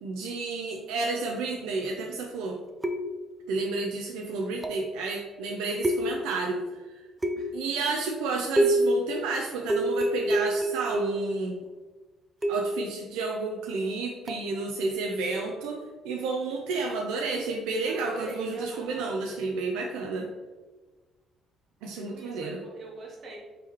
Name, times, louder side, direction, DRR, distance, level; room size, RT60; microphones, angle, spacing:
voice 1, 0.0-2.6 3.5-6.6 7.5-11.6 12.5-20.3 21.8-22.6, right 3 dB, 85° right, 1 dB, 0.4 m, -31 dB
sound 1, 2.8-3.4 4.6-5.0 5.8-6.4 7.2-7.7 8.6-9.0 9.7-11.3 12.4-12.8 14.3-14.5, right 1 dB, 10° right, 0.4 m, -27 dB
voice 2, 17.9-19.1 22.1-23.4, right 3 dB, 50° right, -1 dB, 1.0 m, -43 dB
3.7 x 3.0 x 2.9 m, 1.3 s
supercardioid pair, 80°, 0 cm